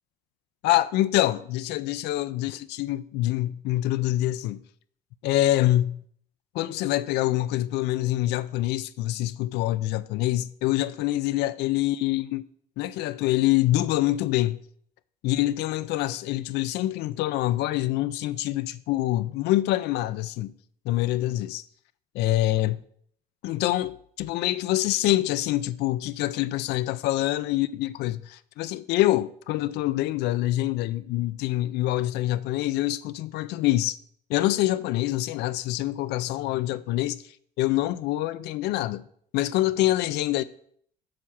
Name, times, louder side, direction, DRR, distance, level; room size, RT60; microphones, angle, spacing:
voice 1, 0.6-4.6 5.2-6.0 6.5-12.5 12.8-14.6 15.2-20.5 20.9-21.6 22.1-22.8 23.4-34.0 34.3-37.2 37.6-39.0 39.3-40.4, left 15 dB, 85° left, 0.4 m, -25 dB
7.8 x 5.6 x 7.1 m
cardioid pair, 110°, 17 cm